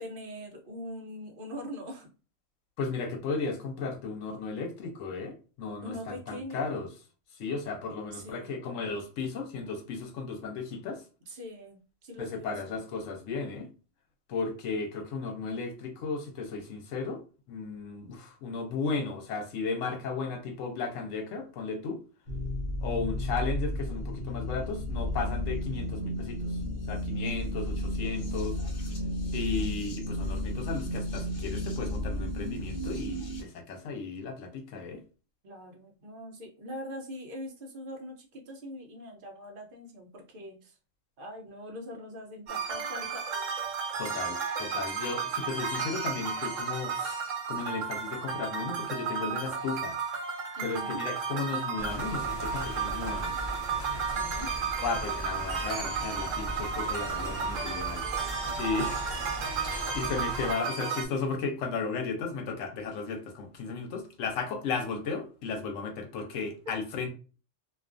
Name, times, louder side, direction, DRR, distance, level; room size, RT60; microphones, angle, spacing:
voice 1, 0.0-2.1 5.8-6.9 8.1-8.6 11.3-12.8 35.4-40.8 41.2-43.3 50.6-51.0 54.1-54.5 58.7-59.6, equal, 55° right, 0.7 m, -42 dB
voice 2, 2.8-6.9 7.4-11.0 12.2-13.7 14.3-17.2 17.5-22.0 22.8-26.5 26.9-28.6 29.3-35.0 44.0-47.2 47.5-49.9 50.6-53.3 54.8-58.0 58.6-59.0 59.9-67.1, left 4 dB, 80° left, 1.0 m, -35 dB
sound 1, 22.3-33.4, left 1 dB, 55° left, 0.8 m, -33 dB
sound 2, 42.5-61.1, right 6 dB, 75° right, 1.0 m, -33 dB
sound 3, 51.8-60.5, equal, 35° left, 0.4 m, -39 dB
2.4 x 2.3 x 2.4 m
omnidirectional pair, 1.3 m